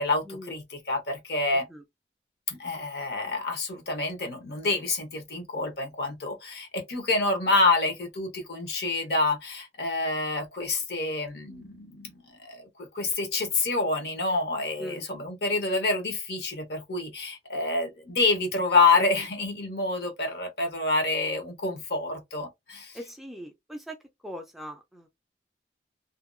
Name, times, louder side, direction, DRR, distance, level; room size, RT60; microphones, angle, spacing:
voice 1, 0.0-1.7 2.5-12.7 12.9-22.9, left 3 dB, 60° left, 0.9 m, -27 dB
voice 2, 22.9-24.0 24.2-25.1, equal, ahead, 0.3 m, -40 dB
2.7 x 2.2 x 2.4 m
head